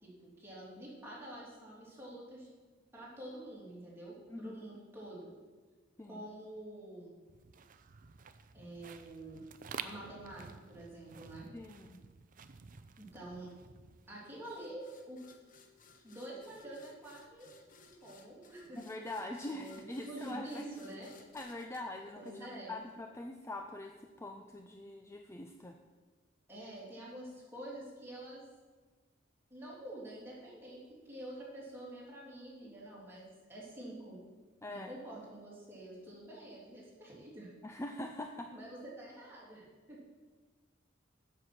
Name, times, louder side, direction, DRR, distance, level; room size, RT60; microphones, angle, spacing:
voice 1, 0.0-2.5 2.9-5.3 6.0-7.1 8.5-9.4 9.8-11.5 13.0-13.5 14.1-15.2 16.0-18.8 19.5-21.1 22.2-22.7 26.5-28.4 29.5-34.2 34.7-37.5 38.5-40.1, right 1 dB, 10° right, -6 dB, 3.1 m, -47 dB
sound 1, 7.3-14.6, right 6 dB, 45° right, 0.5 m, -51 dB
voice 2, 11.5-12.0 18.8-20.7 21.3-25.8 34.6-34.9 37.6-38.5, left 1 dB, 15° left, 4 dB, 0.4 m, -43 dB
sound 2, 14.4-22.9, left 5 dB, 45° left, 0.9 m, -61 dB
7.8 x 7.2 x 6.1 m, 1.4 s
head